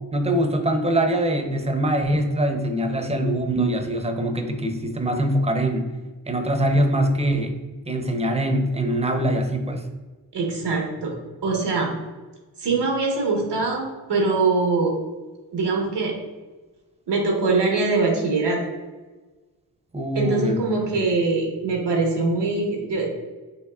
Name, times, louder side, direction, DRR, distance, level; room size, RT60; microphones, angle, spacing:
voice 1, 0.1-5.9 6.3-7.6 7.9-9.8 19.9-20.6 20.9-21.1, right 1 dB, 15° right, 6 dB, 0.7 m, -23 dB
voice 2, 10.3-11.9 12.6-15.0 15.5-16.2 17.1-18.6 20.1-23.1, right 3 dB, 80° right, 0 dB, 1.2 m, -23 dB
5.5 x 3.1 x 2.4 m, 1.3 s
cardioid pair, 45°, 41 cm